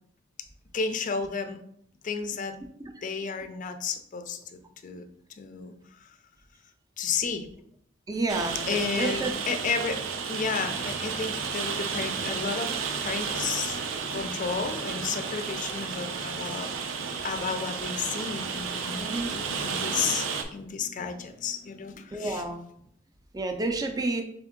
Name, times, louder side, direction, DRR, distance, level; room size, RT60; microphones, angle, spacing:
voice 1, 0.7-1.6 2.0-2.6 3.0-4.4 4.8-5.1 5.4-5.7 7.0-7.5 8.7-10.0 10.3-12.7 13.0-13.8 14.1-16.7 17.2-20.3 20.5-22.5, left 5 dB, 40° left, 8 dB, 0.4 m, -32 dB
voice 2, 8.1-9.3 19.0-19.3 22.1-22.6 23.3-24.2, right 2 dB, 20° right, 5 dB, 0.4 m, -30 dB
Rain, 8.3-20.4, right 5 dB, 80° right, 0.5 m, -32 dB
3.7 x 3.5 x 3.6 m, 0.69 s
head